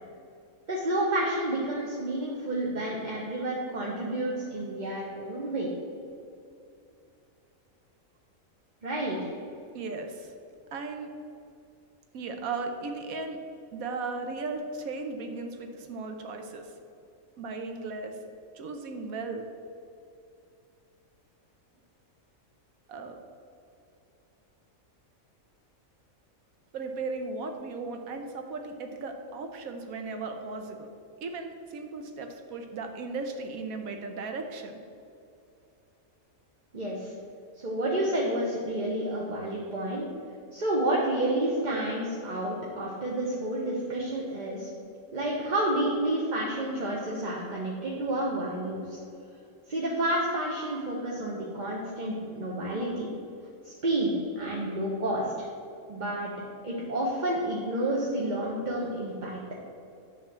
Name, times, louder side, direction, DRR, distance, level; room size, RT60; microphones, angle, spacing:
voice 1, 0.7-5.7 8.8-9.3 36.7-37.1 37.6-40.1 40.5-44.7 45.1-49.0 49.7-53.1 53.6-55.5 55.9-56.3 56.6-59.4, right 1 dB, 35° right, -3 dB, 1.0 m, -30 dB
voice 2, 9.7-10.3 10.7-11.1 12.1-13.4 13.7-16.7 17.4-18.1 18.5-19.5 22.9-23.2 26.7-30.9 31.2-34.8, right 3 dB, 90° right, 5 dB, 1.2 m, -36 dB
10.5 x 3.5 x 7.2 m, 2.6 s
omnidirectional pair, 1.4 m